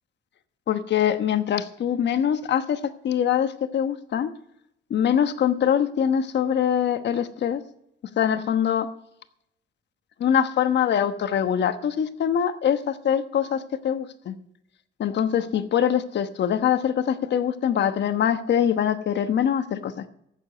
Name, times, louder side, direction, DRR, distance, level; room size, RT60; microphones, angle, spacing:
voice 1, 0.7-4.3 4.9-7.6 8.2-8.9 10.2-14.3 15.0-20.1, left 9 dB, 60° left, 10 dB, 1.1 m, -23 dB
14.5 x 7.1 x 9.3 m, 0.75 s
cardioid pair, 90°, 20 cm